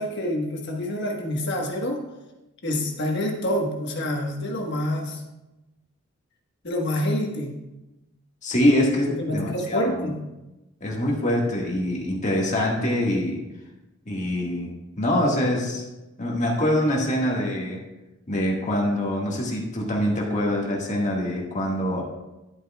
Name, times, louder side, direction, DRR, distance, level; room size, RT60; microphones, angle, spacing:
voice 1, 0.0-2.0 2.6-5.2 6.6-7.6 9.2-10.2, left 1 dB, 60° left, 1 dB, 1.3 m, -27 dB
voice 2, 8.4-10.1 10.8-13.4 14.1-15.8 16.2-17.8 18.3-22.0, left 1 dB, 35° left, -2 dB, 1.6 m, -24 dB
11.0 x 7.8 x 2.3 m, 1.0 s
head